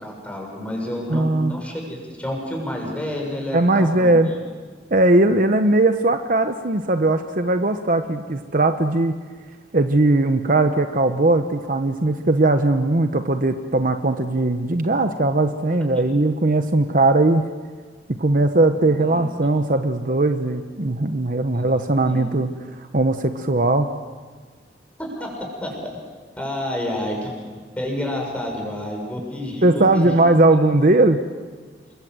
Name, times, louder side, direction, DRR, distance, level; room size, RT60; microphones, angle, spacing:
voice 1, 0.0-4.4 19.0-19.2 21.5-21.8 22.1-22.2 25.0-25.3 25.6-25.7 26.4-27.3 27.8-30.2 30.5-30.6 31.0-31.1, left 1 dB, 5° left, 0 dB, 6.7 m, -29 dB
voice 2, 1.1-1.6 3.5-4.3 4.9-9.2 9.7-17.4 18.1-22.5 22.9-23.9 29.6-31.2, right 2 dB, 50° right, 7 dB, 1.0 m, -19 dB
29.0 x 23.5 x 7.9 m, 1.5 s
head